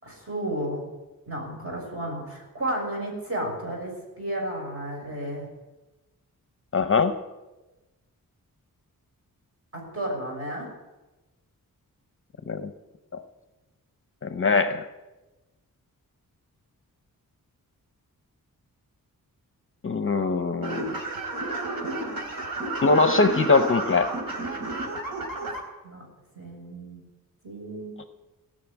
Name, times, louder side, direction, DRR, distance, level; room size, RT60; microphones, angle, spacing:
voice 1, 0.0-0.8 1.3-5.5 9.7-10.7 25.8-26.0 26.3-27.0 27.4-28.1, right 1 dB, 40° right, -1 dB, 6.3 m, -32 dB
voice 2, 6.7-7.2 12.5-12.7 13.1-13.2 14.2-14.8 19.8-20.9 22.8-24.1, left 4 dB, 40° left, 9 dB, 0.7 m, -22 dB
sound 1, 20.6-25.6, right 2 dB, 80° right, 3.7 m, -31 dB
17.5 x 6.6 x 9.9 m, 1.1 s
wide cardioid pair, 170°, 34 cm